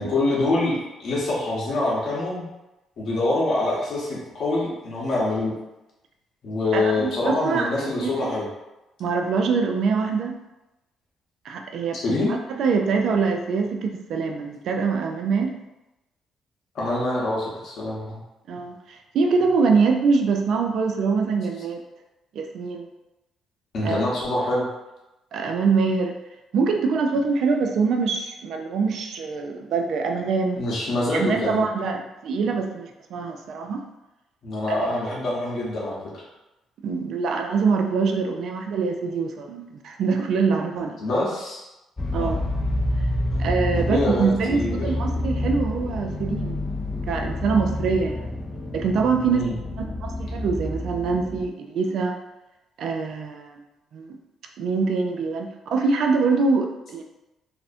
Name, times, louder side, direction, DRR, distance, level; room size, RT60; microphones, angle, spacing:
voice 1, 0.0-2.4 3.0-5.5 6.4-8.5 11.9-12.3 16.7-18.2 23.7-24.7 30.6-31.6 34.4-36.2 41.0-41.6 42.2-42.3 43.3-44.9 49.3-49.6, left 2 dB, 60° left, -5 dB, 0.9 m, -25 dB
voice 2, 6.7-8.3 9.0-10.4 11.4-15.6 18.5-21.8 22.3-22.9 23.8-24.0 25.3-26.1 26.5-30.6 31.1-33.8 34.7-34.9 36.8-41.0 42.1-42.4 43.4-46.6 47.1-48.3 48.7-49.5 50.0-52.2 52.8-53.6 53.9-54.2 54.6-57.0, right 4 dB, 65° right, 3 dB, 0.3 m, -24 dB
sound 1, 42.0-51.4, left 1 dB, 25° left, 0.4 m, -28 dB
2.5 x 2.1 x 2.5 m, 0.97 s
supercardioid pair, 60°, 0 cm